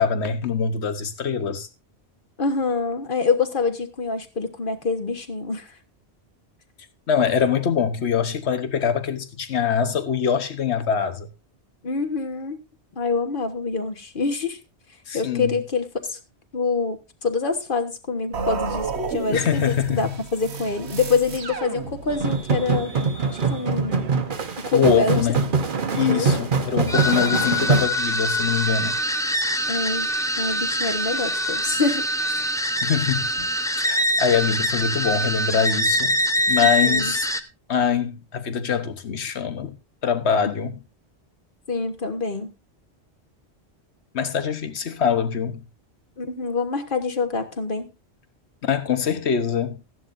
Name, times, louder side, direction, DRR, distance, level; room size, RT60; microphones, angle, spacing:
voice 1, 0.0-1.7 7.1-11.3 15.1-15.5 19.3-20.1 24.7-25.4 25.9-29.0 32.8-33.5 33.8-36.2 36.5-37.3 37.7-39.8 40.0-40.8 44.1-45.6 48.6-49.8, left 7 dB, 75° left, 1.4 m, -23 dB
voice 2, 2.4-5.7 11.8-12.6 12.9-14.6 15.1-16.2 16.5-22.9 23.5-24.1 24.6-25.2 26.1-26.3 29.7-30.1 30.4-32.1 36.6-37.1 41.7-42.5 46.2-47.9, left 4 dB, 50° left, 1.5 m, -26 dB
sound 1, 18.3-22.4, right 5 dB, 75° right, 1.4 m, -32 dB
sound 2, 22.1-27.8, right 4 dB, 50° right, 1.2 m, -23 dB
sound 3, 26.9-37.4, equal, 5° left, 0.6 m, -24 dB
15.0 x 11.0 x 2.6 m
omnidirectional pair, 1.1 m